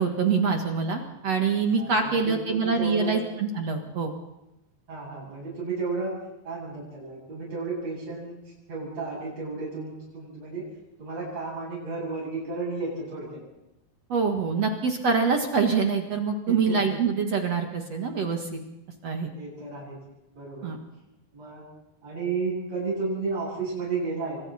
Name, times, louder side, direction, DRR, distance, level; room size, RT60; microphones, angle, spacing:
voice 1, 0.0-4.1 14.1-18.6 19.0-19.3 20.6-20.8, right 5 dB, 50° right, 3 dB, 2.1 m, -25 dB
voice 2, 1.7-3.2 4.9-6.1 6.4-8.4 8.7-10.6 11.0-13.4 16.5-17.0 19.3-20.0 20.3-20.7 21.3-21.6 22.0-24.4, right 4 dB, 35° right, -7 dB, 9.1 m, -33 dB
28.5 x 24.5 x 4.3 m, 0.92 s
omnidirectional pair, 4.9 m